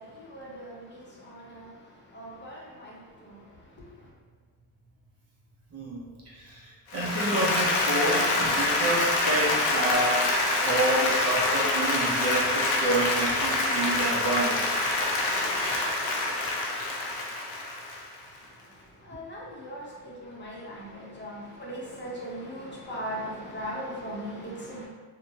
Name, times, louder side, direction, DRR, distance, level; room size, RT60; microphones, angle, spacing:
voice 1, 0.0-4.1 18.4-24.9, equal, 30° left, -5 dB, 0.7 m, -40 dB
voice 2, 5.7-10.3 10.6-14.7, right 1 dB, 40° right, -4 dB, 0.7 m, -29 dB
Applause, 6.9-18.2, left 2 dB, 85° left, 0.6 m, -26 dB
2.7 x 2.2 x 2.7 m, 1.4 s
cardioid pair, 95°, 39 cm